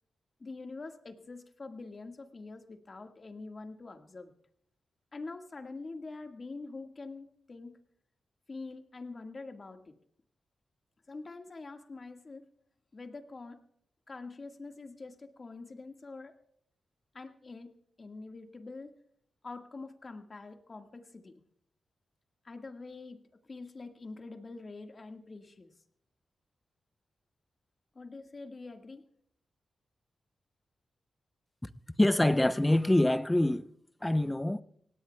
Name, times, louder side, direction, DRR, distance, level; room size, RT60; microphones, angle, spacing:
voice 1, 0.4-4.3 5.1-7.8 8.5-9.9 11.1-12.5 12.9-13.6 14.1-16.3 17.1-17.7 18.0-18.9 19.4-21.4 22.4-23.2 23.4-25.7 27.9-29.1, left 3 dB, 45° left, 1.7 m, -45 dB
voice 2, 32.0-33.7 34.0-34.6, left 1 dB, 15° left, 0.7 m, -25 dB
25.0 x 17.5 x 2.3 m
supercardioid pair, 45°, 0 cm